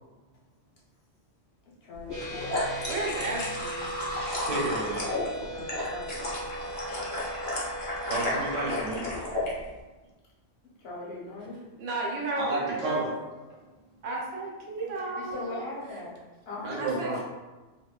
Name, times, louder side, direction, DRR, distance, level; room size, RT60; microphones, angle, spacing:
voice 1, 1.8-2.7 5.5-6.5 10.8-11.6 15.2-16.1 16.5-17.2, left 2 dB, 60° left, -4 dB, 0.7 m, -39 dB
sound 1, 2.1-9.5, left 1 dB, 45° left, 0.3 m, -33 dB
sound 2, 2.1-8.8, right 1 dB, 30° right, 0.3 m, -39 dB
voice 2, 2.9-3.9 11.8-13.1 14.0-16.0 16.8-17.2, right 2 dB, 65° right, -2 dB, 0.8 m, -34 dB
voice 3, 4.1-5.2 7.1-7.2 8.0-9.1 12.4-13.1 16.6-17.2, right 2 dB, 85° right, -4 dB, 1.1 m, -31 dB
2.9 x 2.2 x 2.2 m, 1.2 s
omnidirectional pair, 1.3 m